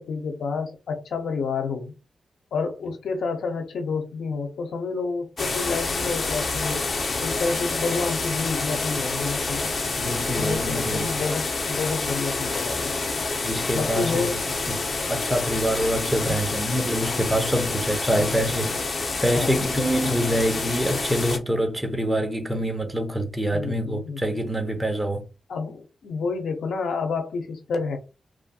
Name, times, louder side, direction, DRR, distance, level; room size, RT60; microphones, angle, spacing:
voice 1, 0.0-1.9 2.5-6.9 7.2-9.7 10.3-12.9 13.7-14.4 16.2-16.4 18.1-18.5 19.3-19.7 20.0-20.6 23.5-24.2 25.5-28.0, left 4 dB, 90° left, 0.7 m, -29 dB
sound 1, 5.4-21.4, left 3 dB, 55° left, 0.7 m, -28 dB
voice 2, 10.0-11.1 13.4-14.3 14.7-25.2, equal, 10° right, 0.8 m, -26 dB
3.2 x 2.5 x 2.4 m
cardioid pair, 75°, 0 cm